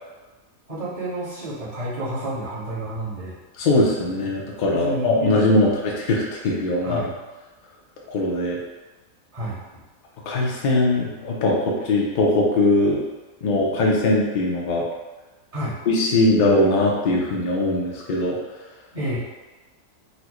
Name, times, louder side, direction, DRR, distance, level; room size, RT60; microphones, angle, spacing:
voice 1, 0.7-3.4 4.7-5.7 6.8-7.2 9.3-9.6 15.5-15.8 18.9-19.2, right 1 dB, 25° right, -10 dB, 1.0 m, -30 dB
voice 2, 3.6-7.1 8.1-8.6 10.3-13.0 13.4-14.9 15.9-18.4, left 2 dB, 80° left, -2 dB, 0.4 m, -21 dB
4.2 x 2.0 x 2.9 m, 1.2 s
omnidirectional pair, 1.5 m